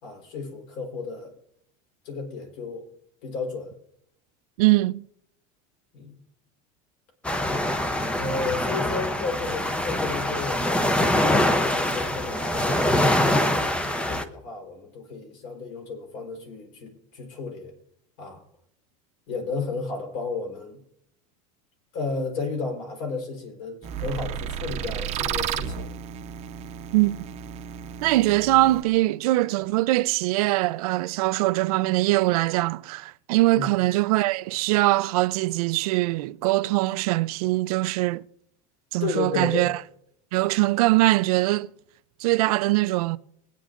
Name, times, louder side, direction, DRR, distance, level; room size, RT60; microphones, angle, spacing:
voice 1, 0.0-1.3 2.0-2.9 3.2-3.7 5.9-6.2 8.1-17.7 18.2-18.4 19.3-20.8 21.9-25.9 33.6-33.7 39.0-39.7, left 4 dB, 60° left, 3.9 m, -33 dB
voice 2, 4.6-5.0 26.9-27.1 28.0-38.2 38.9-39.8 40.3-41.7 42.2-43.2, right 19 dB, 80° right, 0.5 m, -22 dB
sound 1, 7.2-14.3, left 1 dB, 5° left, 0.6 m, -24 dB
sound 2, 23.8-28.8, right 8 dB, 35° right, 0.8 m, -33 dB
23.0 x 9.3 x 2.5 m
supercardioid pair, 140°, 19 cm